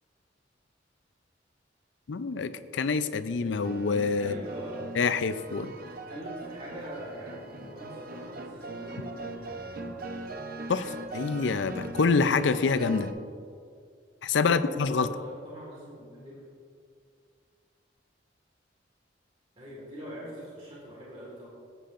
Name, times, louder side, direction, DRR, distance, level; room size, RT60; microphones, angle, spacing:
voice 1, 2.1-4.4 5.0-5.7 10.7-13.1 14.2-15.1, left 4 dB, 80° left, 12 dB, 0.5 m, -26 dB
sound 1, 3.2-13.1, right 2 dB, 55° right, 0.7 m, -41 dB
voice 2, 4.2-4.9 5.6-10.0 14.3-16.4 19.6-21.6, equal, 30° right, -5 dB, 1.8 m, -43 dB
17.0 x 8.3 x 2.5 m, 2.2 s
head